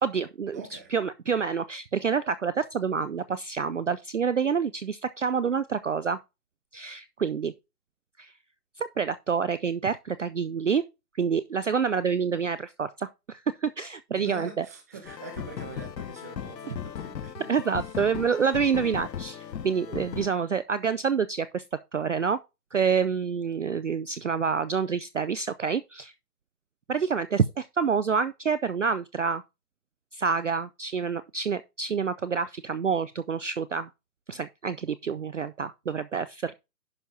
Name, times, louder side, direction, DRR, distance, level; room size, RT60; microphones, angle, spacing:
voice 1, 0.0-0.6 0.9-6.2 6.7-7.5 8.2-8.3 8.8-10.8 11.1-14.7 16.7-16.8 17.5-21.6 21.9-22.4 22.7-26.1 26.9-29.4 30.1-33.9 34.3-36.5, right 6 dB, 50° right, 0.5 m, -27 dB
voice 2, 0.5-0.9 14.1-17.5 17.8-18.0, right 4 dB, 10° right, 1.0 m, -43 dB
sound 1, 15.1-20.3, left 8 dB, 90° left, 0.9 m, -37 dB
10.5 x 5.9 x 3.7 m
hypercardioid pair, 170°, 49 cm